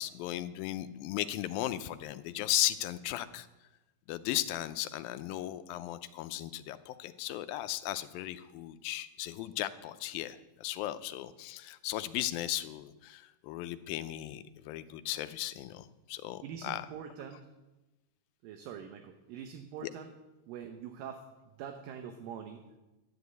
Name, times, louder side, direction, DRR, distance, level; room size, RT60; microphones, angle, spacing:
voice 1, 0.0-3.5 4.1-16.9 19.8-19.9, left 14 dB, 85° left, 11 dB, 2.4 m, -36 dB
voice 2, 16.4-17.4 18.4-20.1 20.5-21.2 21.6-22.6, right 8 dB, 75° right, 6 dB, 2.6 m, -44 dB
11.5 x 10.5 x 8.2 m, 1.0 s
omnidirectional pair, 4.1 m